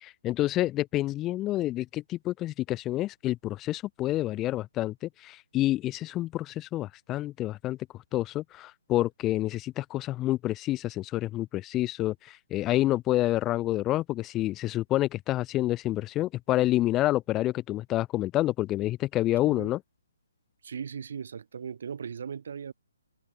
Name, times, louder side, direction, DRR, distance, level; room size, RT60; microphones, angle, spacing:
voice 1, 0.0-7.8 8.1-19.8, left 15 dB, 20° left, 1.0 m, -28 dB
voice 2, 20.6-22.7, right 7 dB, 55° right, 1.7 m, -38 dB
figure-of-eight pair, 135°, 0 cm